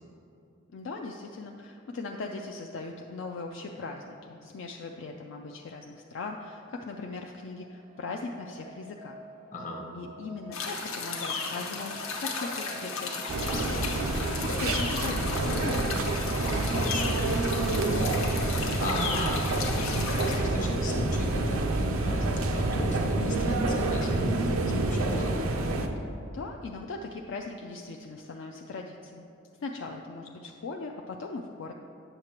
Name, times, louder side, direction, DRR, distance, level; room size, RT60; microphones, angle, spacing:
voice 1, 0.7-9.2 9.9-16.1 26.3-29.2 29.6-31.7, left 3 dB, 60° left, 2 dB, 0.4 m, -39 dB
sound 1, 7.5-25.7, right 2 dB, 35° right, 0.4 m, -49 dB
voice 2, 9.5-9.9 16.7-17.2 17.7-18.0 18.5-25.5, left 1 dB, 40° left, 0 dB, 0.9 m, -36 dB
sound 2, 10.5-20.4, left 4 dB, 75° left, 1.0 m, -34 dB
sound 3, 13.3-25.9, right 2 dB, 85° right, 0.6 m, -28 dB
8.9 x 6.6 x 2.9 m, 2.6 s
head